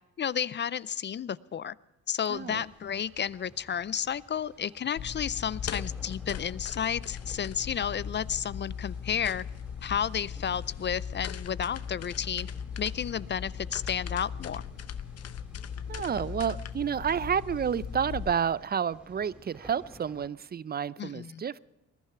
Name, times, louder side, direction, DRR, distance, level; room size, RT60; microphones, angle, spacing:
voice 1, 0.2-1.7 2.1-9.4 9.8-12.5 12.8-14.6 21.0-21.4, left 8 dB, 35° left, 20 dB, 0.5 m, -32 dB
Chuva e natureza, 2.3-20.3, equal, ahead, 3.2 m, -56 dB
voice 2, 2.3-2.6 15.9-21.6, right 7 dB, 30° right, 20 dB, 0.6 m, -30 dB
sound 1, 5.0-18.3, left 7 dB, 55° left, 0.9 m, -38 dB
20.5 x 11.5 x 5.8 m, 1.0 s
cardioid pair, 90°, 30 cm